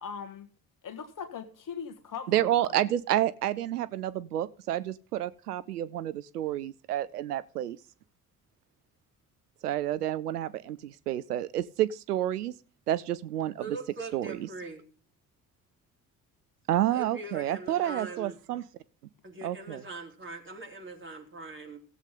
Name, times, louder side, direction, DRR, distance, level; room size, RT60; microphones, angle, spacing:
voice 1, 0.0-0.5 0.8-2.8, left 6 dB, 45° left, 1.9 m, -40 dB
voice 2, 2.3-7.8 9.6-12.5 12.9-13.8 14.1-14.4 16.7-18.6 19.4-19.8, right 12 dB, 80° right, 0.5 m, -29 dB
voice 3, 13.6-14.9 16.9-18.4 19.2-21.8, right 3 dB, 25° right, 3.9 m, -41 dB
16.5 x 8.1 x 3.7 m
figure-of-eight pair, 45°, 45 cm